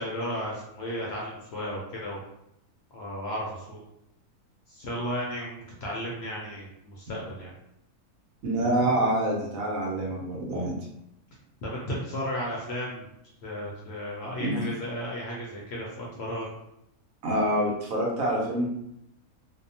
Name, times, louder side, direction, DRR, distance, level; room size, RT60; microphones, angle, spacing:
voice 1, 0.0-2.2 2.9-3.8 4.7-7.5 11.6-13.1 13.4-16.5, equal, 65° left, -3 dB, 0.6 m, -34 dB
voice 2, 8.4-10.8 14.4-14.6 17.2-18.7, right 1 dB, 70° right, -3 dB, 1.0 m, -26 dB
2.7 x 2.1 x 2.6 m, 0.80 s
omnidirectional pair, 1.6 m